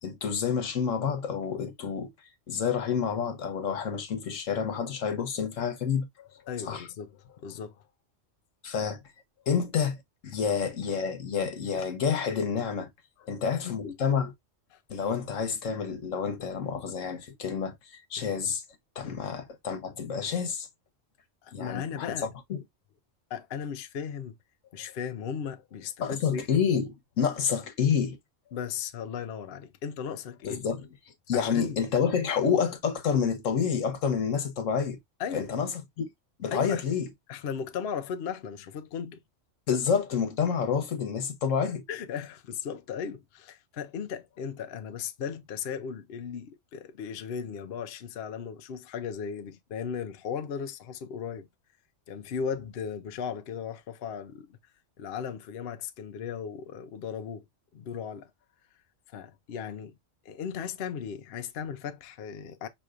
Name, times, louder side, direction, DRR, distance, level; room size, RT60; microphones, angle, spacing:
voice 1, 0.0-2.1 2.5-6.1 6.6-6.9 8.6-9.0 9.5-10.0 10.2-12.9 13.3-14.3 14.9-18.6 19.0-20.7 21.5-22.6 26.0-28.2 30.4-30.8 31.3-35.0 35.3-35.7 36.0-36.1 36.4-37.1 39.7-41.8, left 7 dB, 80° left, 1.3 m, -28 dB
voice 2, 6.5-7.8 13.3-13.4 13.6-14.0 14.7-14.8 18.2-18.3 19.0-19.2 21.4-22.3 23.3-24.4 24.7-26.5 28.5-30.6 31.3-31.8 35.2-35.5 36.5-36.8 37.3-39.2 41.9-51.5 52.1-54.6 55.0-57.4 57.7-58.3 59.1-59.9 60.2-62.7, left 7 dB, 60° left, 0.8 m, -36 dB
6.1 x 3.0 x 2.5 m
omnidirectional pair, 1.3 m